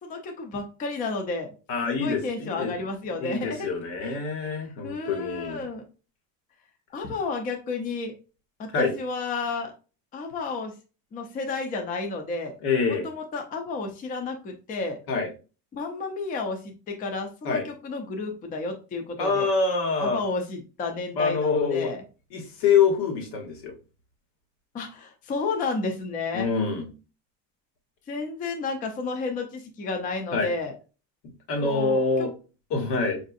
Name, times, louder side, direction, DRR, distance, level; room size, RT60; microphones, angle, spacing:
voice 1, 0.0-1.5 1.8-3.7 4.0-4.2 4.8-5.8 6.9-8.1 8.6-9.7 10.1-10.7 11.1-12.5 12.9-15.0 15.7-19.5 20.0-22.0 24.7-26.5 28.1-30.8 31.6-32.3, left 3 dB, 20° left, 4 dB, 0.4 m, -32 dB
voice 2, 1.7-2.7 3.2-5.7 8.7-8.9 12.6-13.1 15.1-15.3 17.4-17.6 19.2-20.2 21.1-21.9 22.3-23.7 26.3-26.9 30.3-30.5 31.5-32.3 32.7-33.2, left 5 dB, 90° left, 3 dB, 1.3 m, -25 dB
4.7 x 2.6 x 2.5 m, 0.33 s
cardioid pair, 180°, 39 cm